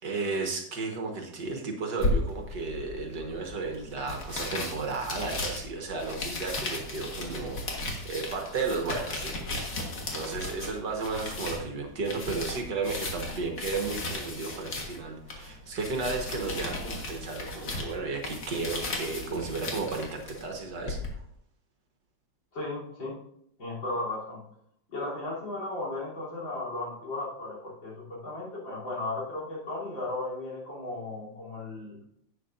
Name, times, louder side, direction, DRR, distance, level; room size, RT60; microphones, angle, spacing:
voice 1, 0.0-9.8 10.1-21.0, right 4 dB, 65° right, 2 dB, 1.9 m, -34 dB
sound 1, 2.0-21.1, left 2 dB, 55° left, 2.0 m, -36 dB
voice 2, 22.5-23.2 23.6-24.4 24.9-32.0, left 2 dB, 70° left, -5 dB, 4.2 m, -35 dB
11.0 x 8.4 x 2.6 m, 0.71 s
omnidirectional pair, 2.1 m